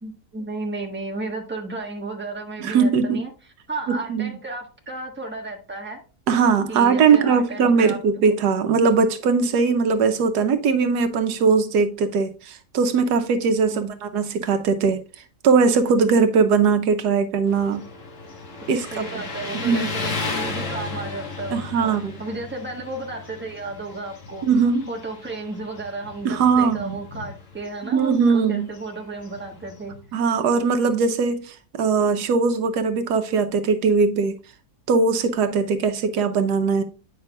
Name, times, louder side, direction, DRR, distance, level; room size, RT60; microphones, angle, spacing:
voice 1, 0.0-3.3 3.7-6.0 6.7-8.3 13.7-13.9 18.9-24.4 24.9-30.2, right 2 dB, 10° right, 1.1 m, -33 dB
voice 2, 2.6-3.2 3.9-4.3 6.3-15.0 15.4-17.8 18.7-19.0 19.6-19.9 21.5-22.1 24.4-24.9 26.2-27.0 27.8-28.7 30.1-34.4 34.9-36.8, right 5 dB, 85° right, 1.3 m, -20 dB
Motorcycle, 17.4-30.1, left 3 dB, 50° left, 1.6 m, -35 dB
8.9 x 5.6 x 2.3 m
omnidirectional pair, 1.7 m